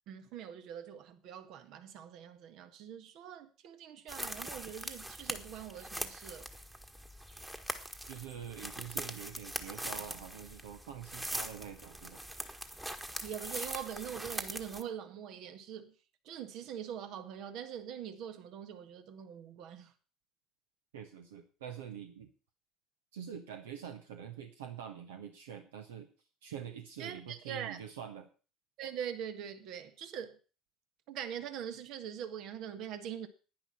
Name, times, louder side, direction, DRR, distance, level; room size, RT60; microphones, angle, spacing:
voice 1, 0.1-6.4 13.2-15.9 16.2-19.9 27.0-27.8 28.8-30.4 31.1-33.3, right 9 dB, 60° right, 1.5 m, -43 dB
sound 1, 4.1-14.8, right 1 dB, 10° right, 1.6 m, -42 dB
voice 2, 8.1-12.2 20.9-22.3 23.1-26.1 26.4-28.3, right 8 dB, 80° right, 1.2 m, -45 dB
10.5 x 10.0 x 5.7 m
hypercardioid pair, 70°, 0 cm